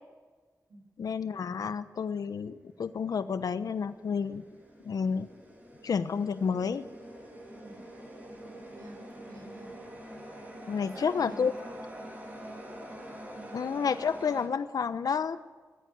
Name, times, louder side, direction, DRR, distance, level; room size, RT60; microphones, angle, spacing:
voice 1, 1.0-4.4 4.8-5.3 5.8-6.9 10.7-11.5 13.5-15.4, left 6 dB, 90° left, 12 dB, 1.0 m, -30 dB
sound 1, 2.9-14.5, equal, 25° right, 6.7 m, -46 dB
voice 2, 8.7-9.8 10.8-11.9 13.3-13.5, right 1 dB, 85° right, 2 dB, 7.8 m, -49 dB
19.0 x 18.5 x 9.5 m, 1.4 s
wide cardioid pair, 110°, 6 cm